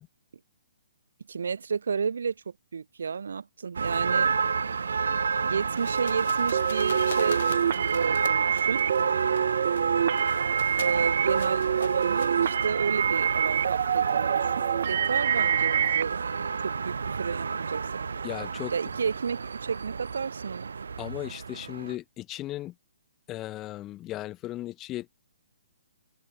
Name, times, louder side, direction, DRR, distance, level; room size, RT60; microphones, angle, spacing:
voice 1, 1.3-2.3 2.7-4.4 5.4-8.8 10.8-16.3 16.6-17.8 18.7-20.7, right 6 dB, 65° right, 1.1 m, -32 dB
sound 1, 3.7-21.9, right 5 dB, 85° right, 1.5 m, -29 dB
sound 2, 5.8-13.1, left 7 dB, 50° left, 5.8 m, -44 dB
sound 3, 6.5-16.0, right 9 dB, 40° right, 0.4 m, -27 dB
voice 2, 18.2-18.7 21.0-22.7 23.3-25.1, left 15 dB, 10° left, 0.5 m, -36 dB
open air
hypercardioid pair, 180°, 0 cm